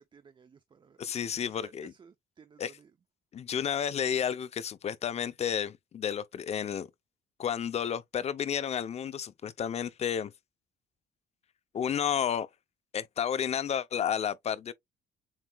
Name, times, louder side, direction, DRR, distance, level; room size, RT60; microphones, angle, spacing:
voice 1, 0.1-2.9, right 6 dB, 30° right, 0.6 m, -56 dB
voice 2, 1.0-1.9 2.6-2.8 3.3-6.9 7.4-10.3 11.7-12.5 12.9-14.7, left 8 dB, 40° left, 0.6 m, -31 dB
7.3 x 2.9 x 2.3 m
cardioid pair, 110°, 17 cm